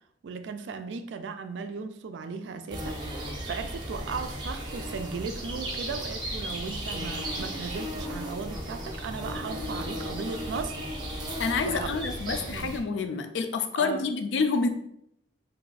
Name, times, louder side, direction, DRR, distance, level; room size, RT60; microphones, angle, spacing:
voice 1, 0.2-10.8 11.6-12.0 12.3-12.8 13.8-14.1, right 5 dB, 80° right, 9 dB, 0.3 m, -37 dB
sound 1, 2.7-12.8, equal, 25° right, 0.6 m, -35 dB
voice 2, 11.4-14.7, left 4 dB, 80° left, 7 dB, 0.4 m, -28 dB
2.6 x 2.3 x 3.9 m, 0.75 s
head